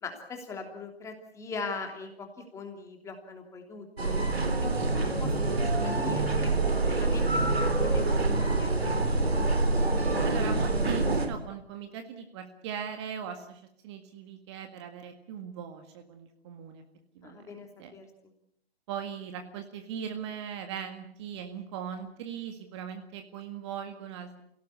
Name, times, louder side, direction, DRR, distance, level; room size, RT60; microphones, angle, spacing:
voice 1, 0.0-4.2 4.6-5.6 5.8-7.5 7.8-8.0 8.4-9.2 17.2-18.0, left 3 dB, 10° left, 4 dB, 3.1 m, -40 dB
sound 1, 4.0-11.3, right 2 dB, 75° right, 3.8 m, -26 dB
voice 2, 10.2-16.8 17.2-17.4 17.8-17.9 18.9-24.4, right 8 dB, 25° right, 6 dB, 1.9 m, -39 dB
27.5 x 17.5 x 8.5 m, 0.75 s
figure-of-eight pair, 135°, 31 cm